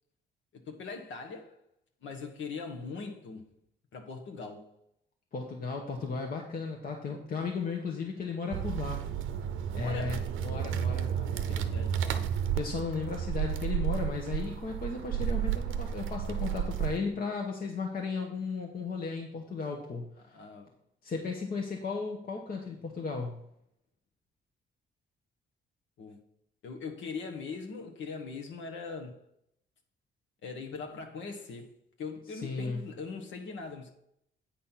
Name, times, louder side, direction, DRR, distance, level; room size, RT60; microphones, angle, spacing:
voice 1, 0.5-1.6 2.0-3.5 3.9-4.7 9.7-10.2 11.1-12.3 20.3-20.7 26.0-26.2 26.6-29.2 30.4-33.9, left 4 dB, 70° left, 1.3 m, -41 dB
voice 2, 5.3-9.0 9.7-11.1 11.5-11.6 12.5-20.4 21.0-23.4 32.3-32.8, left 4 dB, 45° left, 1.1 m, -35 dB
sound 1, 8.5-17.0, right 9 dB, 80° right, 0.6 m, -32 dB
8.7 x 4.2 x 5.7 m
cardioid pair, 90°, 20 cm